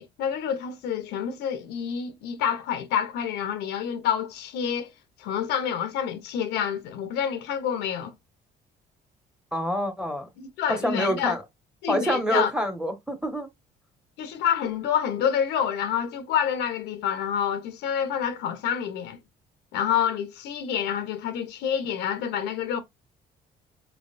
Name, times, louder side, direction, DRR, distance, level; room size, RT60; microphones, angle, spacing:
voice 1, 0.0-4.9 5.2-8.1 10.4-11.4 11.8-12.5 14.2-19.2 19.7-22.8, left 8 dB, 90° left, 1.0 m, -28 dB
voice 2, 9.5-10.3 10.7-11.4 11.9-13.5, equal, 5° right, 1.6 m, -26 dB
4.8 x 3.3 x 2.6 m
cardioid pair, 110°, 17 cm